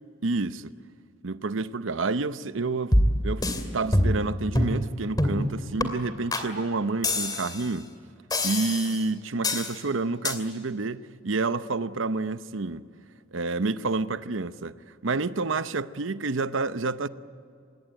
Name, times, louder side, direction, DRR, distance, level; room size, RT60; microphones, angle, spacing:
voice 1, 0.2-0.7 1.2-3.0 3.2-3.4 3.7-7.9 8.4-12.9 13.3-14.8 15.0-17.1, right 3 dB, 80° right, 0.8 m, -29 dB
sound 1, 2.9-3.6 3.9-4.3 4.5-4.8 5.2-5.4 5.8-5.9 6.3-6.5 7.0-7.7 8.3-9.0 9.4-9.7 10.2-10.4, left 1 dB, 20° left, 2.5 m, -24 dB
26.5 x 20.5 x 9.0 m
head